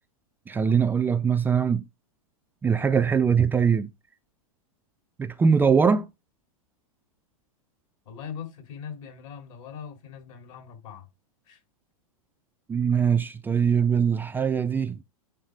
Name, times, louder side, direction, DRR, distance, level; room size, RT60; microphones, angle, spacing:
voice 1, 0.5-1.8 2.6-3.9 5.2-6.1 12.7-15.0, right 6 dB, 10° right, 0.3 m, -22 dB
voice 2, 8.0-11.1 11.5-11.6, left 7 dB, 60° left, 3.0 m, -41 dB
9.2 x 3.4 x 5.0 m
hypercardioid pair, 120°, 18 cm